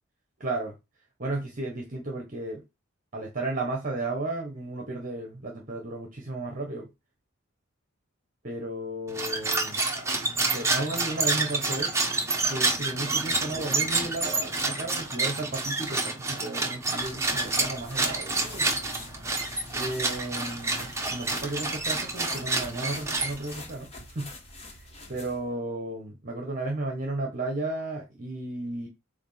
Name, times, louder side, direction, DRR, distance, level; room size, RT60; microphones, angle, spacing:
voice 1, 0.4-0.7 1.2-2.6 3.1-6.9 8.4-9.9 10.4-11.9 12.5-18.8 19.7-24.3 24.7-24.8 25.1-28.9, right 2 dB, 40° right, 1.3 m, -34 dB
sound 1, 9.1-23.7, right 3 dB, 15° right, 1.3 m, -28 dB
sound 2, 16.9-25.5, left 2 dB, 30° left, 1.8 m, -45 dB
8.4 x 2.9 x 5.7 m
head